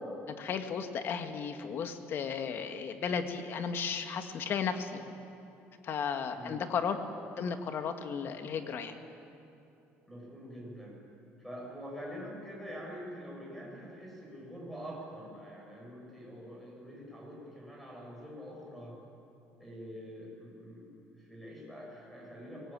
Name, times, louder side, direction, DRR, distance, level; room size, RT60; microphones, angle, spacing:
voice 1, 0.3-5.0 5.8-7.0 7.4-9.0, left 6 dB, 50° left, 7 dB, 1.8 m, -34 dB
voice 2, 6.3-6.7 10.1-11.0 11.4-19.0 19.6-22.7, equal, ahead, -2 dB, 7.6 m, -45 dB
22.5 x 19.0 x 8.9 m, 2.8 s
cardioid pair, 130°, 5 cm